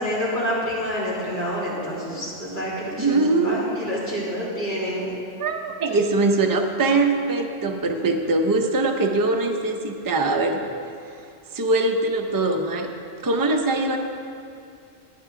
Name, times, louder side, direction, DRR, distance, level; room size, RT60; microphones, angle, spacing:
voice 1, 0.0-5.1, equal, 40° left, -8 dB, 3.0 m, -28 dB
voice 2, 3.0-3.7 5.4-10.7 11.5-12.9 13.2-14.0, right 2 dB, 25° right, 3 dB, 0.5 m, -22 dB
12.0 x 9.7 x 3.8 m, 2.5 s
omnidirectional pair, 1.2 m